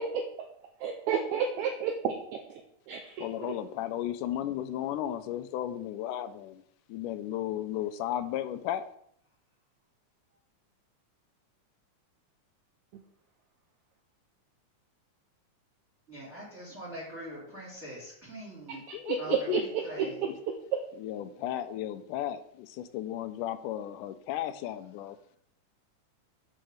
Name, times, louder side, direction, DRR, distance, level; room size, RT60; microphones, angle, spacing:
voice 1, 0.8-2.2 2.5-2.6 2.9-3.5 12.9-13.0 18.7-20.8, right 7 dB, 75° right, 3 dB, 2.0 m, -31 dB
voice 2, 3.2-6.6 6.9-8.9 18.7-19.2 19.5-19.6 21.0-25.4, left 12 dB, 90° left, 11 dB, 2.1 m, -34 dB
voice 3, 16.1-18.8 19.2-20.1, right 1 dB, 20° right, -5 dB, 2.8 m, -43 dB
6.4 x 5.8 x 6.4 m, 0.70 s
omnidirectional pair, 3.6 m